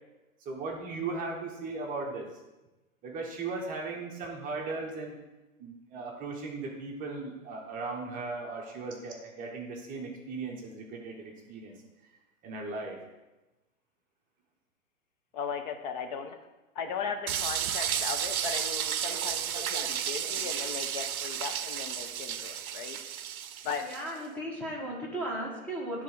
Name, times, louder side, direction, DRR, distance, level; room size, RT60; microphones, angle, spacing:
voice 1, 0.4-2.3 3.0-5.1 5.6-11.7 12.4-13.0 19.0-19.9 20.2-20.9, right 3 dB, 20° right, 0 dB, 1.0 m, -38 dB
voice 2, 15.3-16.4 16.7-23.0 23.6-23.9, left 6 dB, 35° left, 6 dB, 0.8 m, -37 dB
sound 1, 17.3-24.1, right 9 dB, 80° right, 0.6 m, -33 dB
voice 3, 23.8-26.0, right 1 dB, 5° left, -4 dB, 1.5 m, -36 dB
10.0 x 3.6 x 4.9 m, 1.1 s
hypercardioid pair, 130°, 43 cm